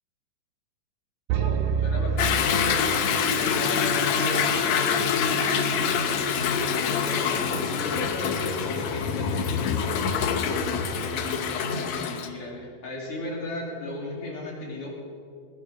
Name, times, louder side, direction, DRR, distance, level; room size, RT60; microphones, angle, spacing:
voice 1, 1.3-4.9 5.2-14.9, left 2 dB, 40° left, -3 dB, 3.5 m, -36 dB
sound 1, 1.3-3.4, right 6 dB, 75° right, 2.0 m, -27 dB
Toilet flush / Drip / Trickle dribble, 2.2-12.3, left 6 dB, 65° left, 1.9 m, -25 dB
19.5 x 10.5 x 6.2 m, 2.6 s
omnidirectional pair, 3.9 m